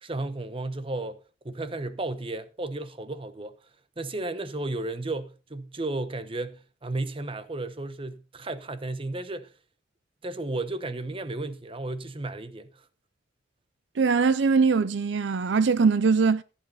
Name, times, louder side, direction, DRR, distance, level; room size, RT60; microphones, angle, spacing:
voice 1, 0.0-1.2 1.4-3.6 4.0-9.5 10.2-12.8, right 2 dB, 30° right, 0.9 m, -33 dB
voice 2, 14.0-16.4, right 5 dB, 75° right, 0.5 m, -22 dB
14.5 x 8.5 x 4.1 m
head